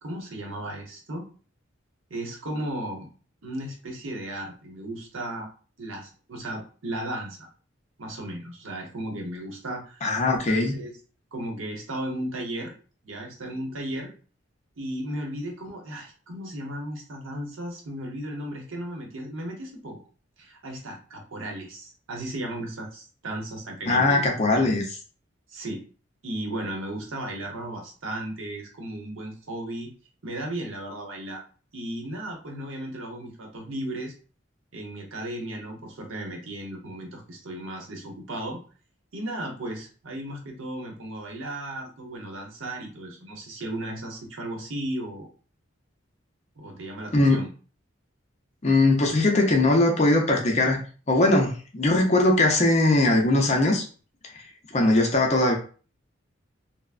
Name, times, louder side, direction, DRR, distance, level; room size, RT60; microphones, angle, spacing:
voice 1, 0.0-1.3 2.1-3.1 3.4-5.5 5.8-7.5 8.0-10.1 10.4-10.9 11.3-12.7 13.0-14.1 14.8-20.0 20.4-24.2 24.5-24.7 25.5-25.8 26.2-29.9 30.2-31.4 31.7-34.1 34.7-38.6 39.1-45.3 46.6-47.5, right 1 dB, 75° right, 1 dB, 0.8 m, -35 dB
voice 2, 10.0-10.8 23.9-24.8 47.1-47.4 48.6-50.8 51.1-53.8 54.7-55.6, left 2 dB, 35° left, 1 dB, 0.5 m, -20 dB
3.4 x 2.0 x 2.4 m, 0.38 s
head